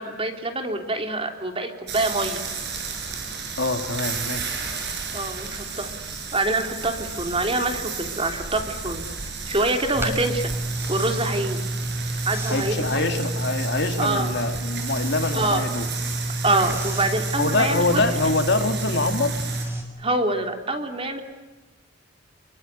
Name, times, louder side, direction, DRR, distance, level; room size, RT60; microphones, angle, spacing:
voice 1, 0.0-2.4 5.1-5.9 6.3-9.0 9.5-10.5 10.9-11.6 12.3-13.1 14.0-14.3 15.3-15.7 16.4-18.0 20.0-21.2, right 2 dB, 30° right, 5 dB, 3.3 m, -25 dB
sound 1, 1.9-19.6, right 5 dB, 60° right, 6.7 m, -33 dB
voice 2, 3.6-4.5 12.5-15.8 17.4-19.4, left 2 dB, 60° left, 6 dB, 3.0 m, -25 dB
sound 2, 9.9-19.8, right 1 dB, 15° right, 6.3 m, -29 dB
27.5 x 24.0 x 8.4 m, 1.2 s
head